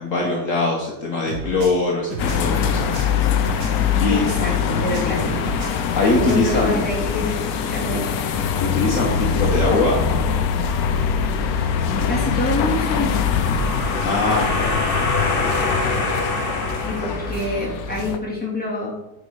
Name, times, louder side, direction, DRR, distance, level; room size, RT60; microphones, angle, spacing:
voice 1, 0.0-3.1 4.0-4.2 5.7-6.8 8.6-10.0 11.5-11.6 14.0-14.7, left 2 dB, 55° left, -1 dB, 1.5 m, -22 dB
sound 1, 1.3-4.5 4.8-6.6, right 5 dB, 85° right, 1.4 m, -32 dB
sound 2, 2.2-18.2, left 7 dB, 70° left, 1.2 m, -23 dB
voice 2, 4.1-5.3 5.9-8.2 12.1-13.3 16.8-18.9, left 1 dB, 5° left, -7 dB, 3.2 m, -26 dB
sound 3, 13.2-17.8, left 3 dB, 40° left, 1.1 m, -24 dB
9.0 x 5.3 x 4.8 m, 0.94 s
omnidirectional pair, 1.7 m